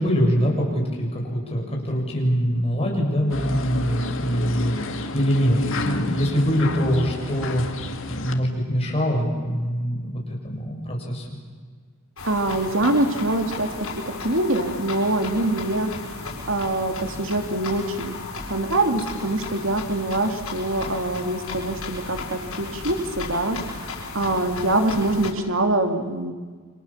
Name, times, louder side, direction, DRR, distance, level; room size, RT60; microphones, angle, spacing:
voice 1, 0.0-5.6 5.8-11.4, equal, 30° left, 0 dB, 7.3 m, -24 dB
sound 1, 3.3-8.3, left 2 dB, 65° left, 2.0 m, -30 dB
sound 2, 12.2-25.3, left 3 dB, 80° left, 7.1 m, -35 dB
voice 2, 12.2-15.9 16.5-18.2 18.5-23.6 24.1-26.3, right 2 dB, 65° right, 6 dB, 2.5 m, -24 dB
29.5 x 26.5 x 7.4 m, 1.5 s
head